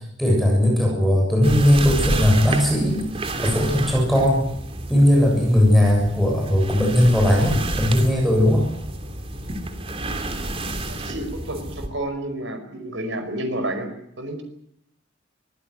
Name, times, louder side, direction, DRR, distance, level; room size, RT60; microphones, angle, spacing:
voice 1, 0.2-3.1 3.4-4.5 4.9-8.7, left 1 dB, ahead, 0 dB, 7.3 m, -18 dB
sound 1, 1.4-11.9, right 1 dB, 30° right, 3.1 m, -30 dB
voice 2, 10.9-14.4, right 1 dB, 85° right, 7 dB, 5.3 m, -30 dB
24.5 x 16.0 x 9.8 m, 0.74 s
head